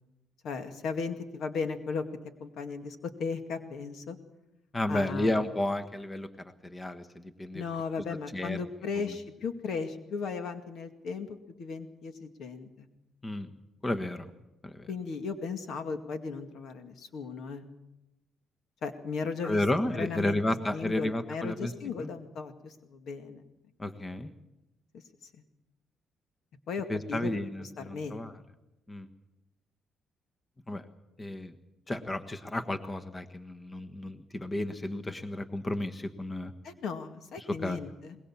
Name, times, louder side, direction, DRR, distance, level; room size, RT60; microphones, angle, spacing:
voice 1, 0.4-2.0 2.4-4.2 4.9-5.3 7.5-12.9 14.9-17.7 18.8-19.6 19.9-20.4 20.7-23.4 26.7-27.3 27.6-28.2 36.6-38.2, left 5 dB, 70° left, 8 dB, 2.1 m, -36 dB
voice 2, 4.7-7.6 8.3-8.6 9.0-9.2 13.2-13.5 13.8-14.3 14.6-14.9 19.4-21.7 22.0-22.1 23.8-24.3 26.9-28.3 28.9-29.1 30.7-30.8 31.2-31.5 31.9-36.5 37.4-37.8, left 1 dB, 20° left, 8 dB, 1.4 m, -32 dB
22.0 x 20.5 x 7.3 m, 0.94 s
cardioid pair, 90°, 0 cm